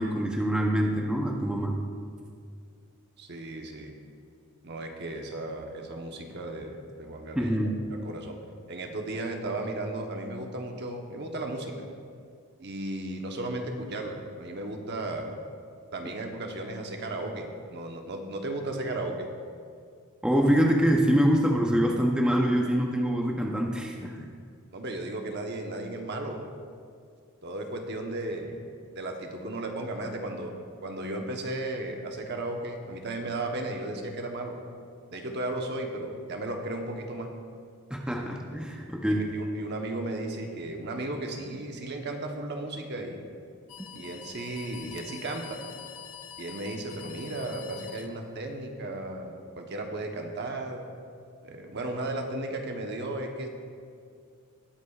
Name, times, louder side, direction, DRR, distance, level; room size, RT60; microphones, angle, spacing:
voice 1, 0.0-1.8 7.4-7.8 20.2-24.3 37.9-39.3, equal, 5° right, 0 dB, 0.6 m, -25 dB
voice 2, 3.2-4.0 4.6-7.6 8.0-8.4 8.7-11.9 12.6-15.4 15.9-19.3 24.7-26.4 27.4-28.6 28.9-30.5 30.8-34.6 35.1-37.3 38.5-38.6 39.1-43.2 43.9-45.6 46.4-50.8 51.4-53.5, right 2 dB, 50° right, 3 dB, 1.0 m, -35 dB
sound 1, 43.7-48.7, left 8 dB, 85° left, 0.7 m, -45 dB
20.0 x 8.1 x 2.4 m, 2.2 s
head